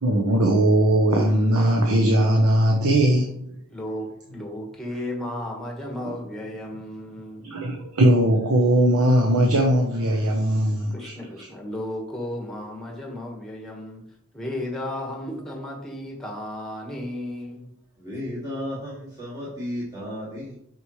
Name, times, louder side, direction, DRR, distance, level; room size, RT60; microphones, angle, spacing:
voice 1, 0.0-3.5 7.4-11.5, right 1 dB, 90° right, 0 dB, 1.1 m, -20 dB
voice 2, 3.7-7.6 10.9-14.0 14.3-17.7, left 1 dB, ahead, -1 dB, 1.6 m, -34 dB
voice 3, 18.0-20.6, left 1 dB, 15° right, -10 dB, 2.4 m, -33 dB
8.5 x 6.3 x 3.2 m, 0.74 s
head